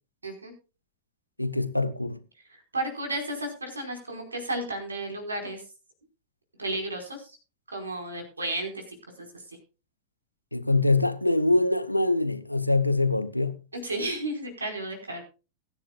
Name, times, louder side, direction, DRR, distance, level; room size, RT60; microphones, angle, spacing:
voice 1, 1.4-2.2 10.5-13.5, left 2 dB, 90° left, 1.0 m, -24 dB
voice 2, 2.5-5.6 6.6-7.4 7.7-8.8 9.2-9.6 13.7-15.2, right 1 dB, 80° right, 4.9 m, -33 dB
21.5 x 10.0 x 2.4 m
figure-of-eight pair, 90°, 0 cm